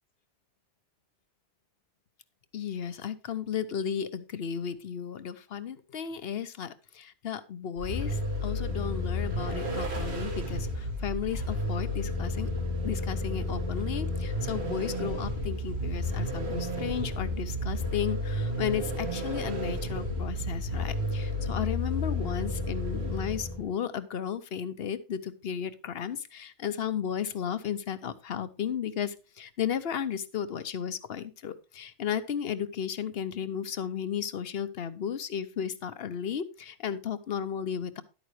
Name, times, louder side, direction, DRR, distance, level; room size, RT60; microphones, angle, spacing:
voice 1, 2.5-12.5 12.8-38.0, left 8 dB, 60° left, 14 dB, 1.0 m, -34 dB
Vehicle, 7.8-23.7, left 1 dB, 65° right, 2.0 m, -32 dB
11.5 x 8.9 x 3.2 m, 0.30 s
omnidirectional pair, 1.2 m